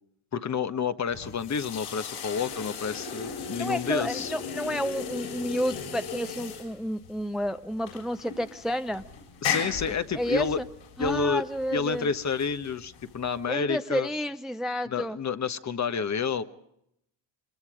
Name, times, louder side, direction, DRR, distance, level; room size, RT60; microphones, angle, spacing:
voice 1, 0.3-4.3 9.4-10.6 11.0-11.4 11.7-14.1 14.9-16.4, left 5 dB, 35° left, 11 dB, 1.3 m, -29 dB
sound 1, 1.1-13.5, left 6 dB, 75° left, 7.7 m, -37 dB
voice 2, 3.6-9.0 9.9-10.7 11.0-12.1 13.5-15.2, equal, ahead, 9 dB, 0.7 m, -30 dB
25.0 x 21.5 x 5.0 m, 0.78 s
supercardioid pair, 75°, 47 cm